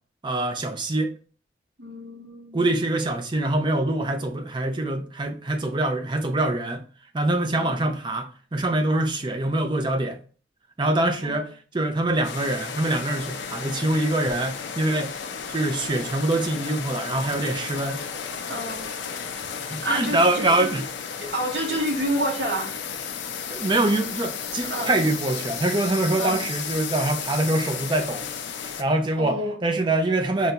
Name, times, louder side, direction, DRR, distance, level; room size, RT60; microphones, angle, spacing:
voice 1, 0.2-1.1 2.5-6.8 7.1-10.2 10.8-15.1 15.5-18.0 19.7-20.8 23.5-28.3 28.6-30.5, right 2 dB, 25° right, 0.5 m, -24 dB
voice 2, 1.8-2.7 7.5-7.8 11.2-11.4 18.5-18.9 19.8-20.7 21.2-22.8 24.6-24.9 26.2-26.4 29.2-29.6, right 1 dB, 65° right, 1.0 m, -29 dB
sound 1, 12.2-28.8, left 6 dB, 80° left, 0.5 m, -33 dB
5.1 x 2.2 x 2.8 m
head